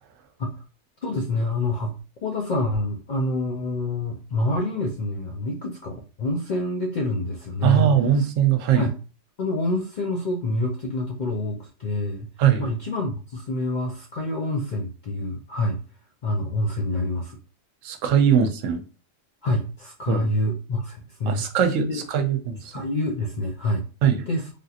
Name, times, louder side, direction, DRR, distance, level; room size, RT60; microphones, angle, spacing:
voice 1, 1.0-2.0 2.2-7.9 8.7-9.0 9.4-12.3 12.6-15.8 16.2-17.4 19.4-21.5 21.9-22.0 22.7-23.8 24.3-24.5, left 1 dB, 60° left, 0.5 m, -27 dB
voice 2, 7.6-8.9 12.4-12.7 17.8-18.8 20.1-20.3 21.3-22.6 24.0-24.3, right 8 dB, 85° right, 0.9 m, -21 dB
3.4 x 2.7 x 2.4 m
omnidirectional pair, 1.3 m